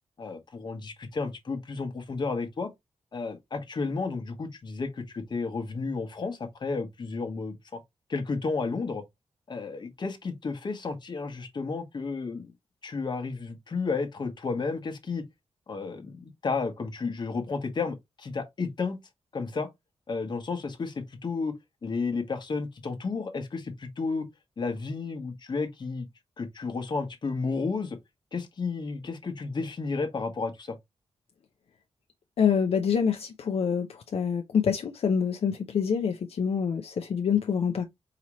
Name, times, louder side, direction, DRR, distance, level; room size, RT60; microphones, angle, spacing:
voice 1, 0.2-2.7 3.1-7.8 8.1-9.0 9.5-12.5 12.8-15.2 15.7-19.0 19.3-19.7 20.1-24.3 24.6-26.1 26.4-28.0 28.3-30.8, left 4 dB, 45° left, 1.0 m, -32 dB
voice 2, 32.4-37.8, left 7 dB, 70° left, 0.5 m, -26 dB
4.9 x 2.8 x 3.0 m
wide cardioid pair, 145°, 11 cm